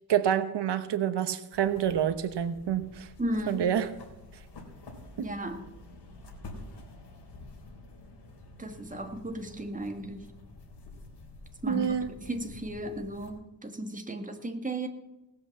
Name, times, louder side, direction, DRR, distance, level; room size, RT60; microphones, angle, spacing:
voice 1, 0.1-3.1 3.5-3.9 11.6-12.1, right 9 dB, 85° right, 11 dB, 1.1 m, -27 dB
sound 1, 1.5-13.3, left 2 dB, 75° left, 3.9 m, -49 dB
voice 2, 3.2-3.7 5.2-5.6 8.6-10.2 11.6-11.9 12.2-14.9, right 1 dB, 20° right, 5 dB, 1.9 m, -35 dB
18.5 x 8.0 x 7.2 m, 1.0 s
wide cardioid pair, 110°, 41 cm